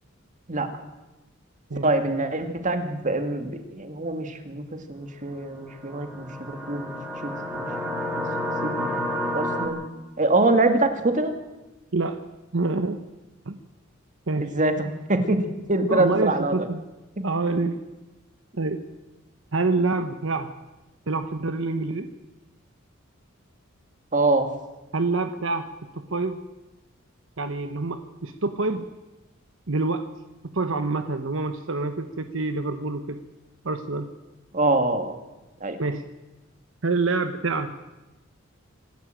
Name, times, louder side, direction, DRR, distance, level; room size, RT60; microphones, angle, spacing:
voice 1, 1.8-6.9 7.2-7.7 8.2-8.3 8.6-9.0 9.3-9.8 10.2-11.4 14.4-15.4 15.7-16.5 17.2-17.3 24.1-24.5 34.5-35.2 35.6-35.8, right 2 dB, 40° right, 7 dB, 2.3 m, -24 dB
sound 1, 5.7-9.7, equal, 5° right, 4.6 m, -30 dB
voice 2, 12.5-13.0 13.5-13.6 14.3-14.5 15.9-16.8 17.2-17.8 18.6-18.8 19.5-20.5 21.1-22.1 24.9-25.7 25.9-26.4 27.4-28.9 29.7-30.1 30.4-33.2 33.6-34.1 35.8-36.0 36.8-37.7, right 3 dB, 70° right, 8 dB, 1.1 m, -26 dB
26.0 x 12.5 x 9.1 m, 1.1 s
head